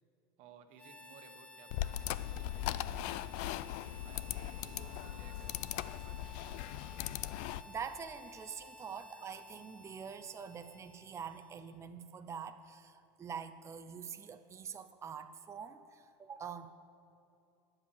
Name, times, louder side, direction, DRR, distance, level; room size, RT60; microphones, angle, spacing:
voice 1, 0.4-3.4 4.0-6.4 9.0-9.2, right 6 dB, 60° right, 7 dB, 1.1 m, -59 dB
Harmonica, 0.8-11.8, left 2 dB, 10° left, 0.8 m, -55 dB
sound 1, 1.7-7.6, left 13 dB, 60° left, 0.4 m, -39 dB
voice 2, 7.4-16.7, right 7 dB, 20° right, 8 dB, 0.5 m, -45 dB
10.5 x 7.5 x 6.9 m, 2.7 s
hypercardioid pair, 100°, 13 cm